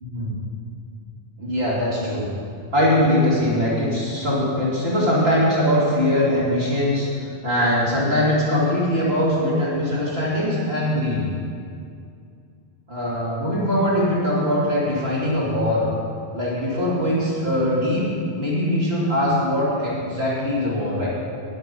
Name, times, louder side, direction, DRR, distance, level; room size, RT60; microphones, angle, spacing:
voice 1, 0.0-0.3 1.4-2.3 2.7-7.1 7.4-11.2 12.9-15.9 16.3-18.0 18.3-21.1, left 1 dB, 70° right, -7 dB, 2.8 m, -21 dB
10.0 x 9.6 x 5.3 m, 2.3 s
omnidirectional pair, 1.1 m